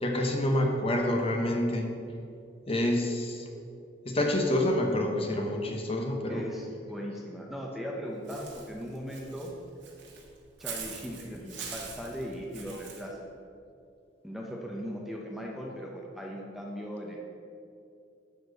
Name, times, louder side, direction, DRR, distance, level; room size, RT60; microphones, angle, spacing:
voice 1, 0.0-1.9 2.7-3.4 4.0-6.4, left 1 dB, 30° left, 1 dB, 1.1 m, -27 dB
voice 2, 6.3-9.5 10.6-13.3 14.2-17.2, equal, ahead, -1 dB, 0.8 m, -38 dB
Walk footsteps / Bird, 8.3-13.0, right 6 dB, 75° right, 1.8 m, -43 dB
11.5 x 4.5 x 6.5 m, 2.5 s
head